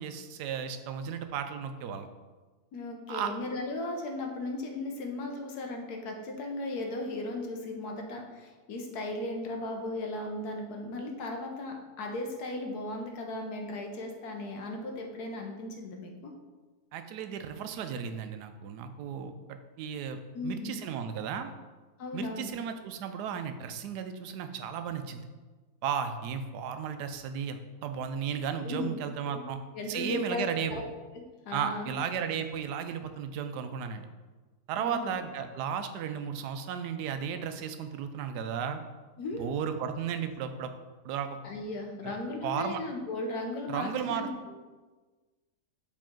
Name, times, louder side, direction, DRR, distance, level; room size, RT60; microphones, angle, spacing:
voice 1, 0.0-2.1 3.1-3.3 16.9-21.5 22.1-25.3 25.8-29.6 29.9-30.8 31.5-34.1 34.7-38.8 39.4-40.7 41.0-41.4 42.0-42.2 42.4-42.8 43.7-44.3, right 7 dB, 85° right, 8 dB, 1.2 m, -34 dB
voice 2, 2.7-16.3 20.3-20.7 22.0-22.5 28.6-29.0 29.2-29.4 29.7-30.8 31.1-31.9 34.8-35.2 39.2-39.5 41.4-44.6, left 2 dB, 75° left, 2 dB, 1.4 m, -36 dB
7.5 x 4.2 x 3.7 m, 1.3 s
omnidirectional pair, 1.7 m